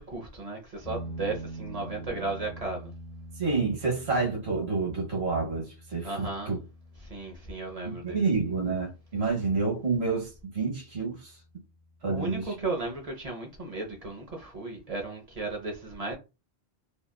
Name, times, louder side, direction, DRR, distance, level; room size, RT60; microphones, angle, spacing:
voice 1, 0.0-2.9 6.0-6.5 7.0-8.2 12.0-16.2, right 3 dB, 40° right, 0.7 m, -35 dB
sound 1, 0.8-9.9, right 1 dB, 45° left, 1.0 m, -44 dB
voice 2, 3.4-6.6 7.8-11.3 12.0-12.5, right 4 dB, 70° right, 1.3 m, -29 dB
2.8 x 2.3 x 2.2 m
omnidirectional pair, 1.1 m